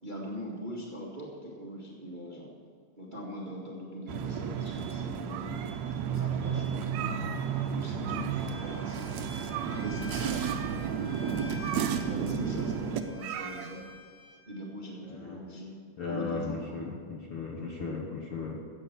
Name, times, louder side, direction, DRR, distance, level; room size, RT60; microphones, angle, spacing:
voice 1, 0.0-2.5 3.0-5.5 6.1-7.2 7.7-9.1 9.7-11.1 12.0-13.8 14.5-15.8 16.1-16.9 17.8-18.0, equal, 25° right, -2 dB, 1.2 m, -41 dB
sound 1, 4.1-13.0, right 7 dB, 70° right, 1.7 m, -32 dB
sound 2, 5.1-6.0 6.3-6.4 6.8-7.7 8.0-8.6 8.9-9.0 9.5-10.0 10.4-14.0, right 11 dB, 90° right, 1.6 m, -40 dB
Bowed string instrument, 8.4-14.4, left 5 dB, 85° left, 4.2 m, -49 dB
voice 2, 15.0-15.4 16.0-18.6, left 4 dB, 60° left, -1 dB, 1.6 m, -36 dB
14.0 x 8.9 x 7.2 m, 2.3 s
omnidirectional pair, 3.8 m